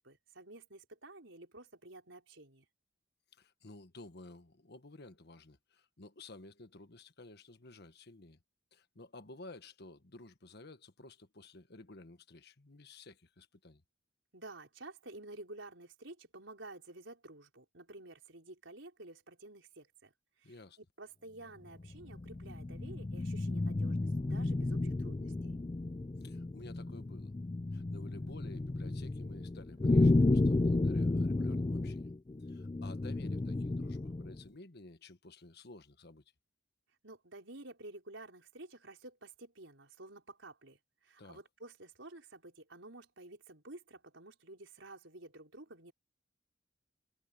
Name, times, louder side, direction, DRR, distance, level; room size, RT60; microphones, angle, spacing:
voice 1, 0.0-2.6 14.3-24.0 24.3-25.5 37.0-45.9, right 2 dB, 75° right, 5.1 m, -51 dB
voice 2, 3.4-8.4 8.7-13.8 20.4-20.8 26.2-27.3 27.7-32.1 32.5-36.2 41.2-41.4, left 2 dB, 60° left, 1.5 m, -53 dB
sound 1, 21.8-34.4, left 2 dB, 25° left, 0.4 m, -32 dB
head